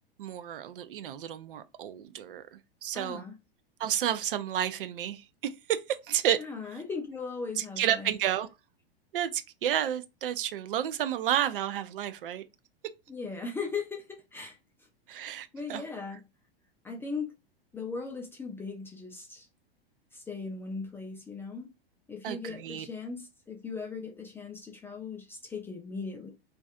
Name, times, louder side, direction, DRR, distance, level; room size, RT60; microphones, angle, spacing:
voice 1, 0.2-3.2 3.8-5.8 6.1-6.4 7.6-8.5 9.1-12.4 15.1-15.8 22.2-22.9, right 10 dB, 65° right, 0.4 m, -31 dB
voice 2, 2.9-3.4 6.4-8.1 13.1-14.6 15.5-16.2 16.8-17.3 17.7-19.5 20.1-21.7 22.1-26.3, left 4 dB, 10° left, 0.3 m, -38 dB
2.4 x 2.3 x 2.4 m
figure-of-eight pair, 95°, 30 cm